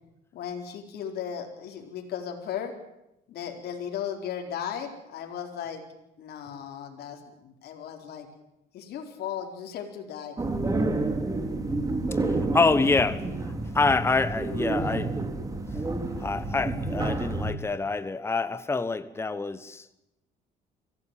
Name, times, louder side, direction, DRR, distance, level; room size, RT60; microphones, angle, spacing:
voice 1, 0.3-2.7 3.3-5.8 6.2-8.3 8.7-10.4, left 8 dB, 70° left, 3 dB, 4.2 m, -36 dB
sound 1, 10.4-17.5, right 2 dB, 20° right, 3.1 m, -29 dB
voice 2, 12.3-15.2 16.1-19.9, left 3 dB, 15° left, 12 dB, 1.2 m, -26 dB
24.5 x 16.5 x 9.2 m, 0.90 s
cardioid pair, 110°, 17 cm